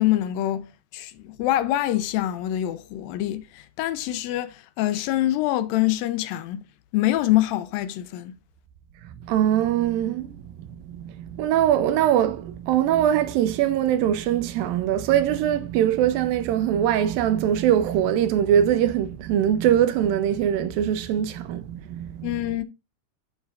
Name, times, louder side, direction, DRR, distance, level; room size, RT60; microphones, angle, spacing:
voice 1, 0.0-6.6 6.9-8.3 22.2-22.6, left 14 dB, 85° left, 2.4 m, -25 dB
voice 2, 9.3-10.4 10.9-22.3, right 10 dB, 80° right, 2.5 m, -22 dB
9.1 x 5.8 x 2.4 m
omnidirectional pair, 4.1 m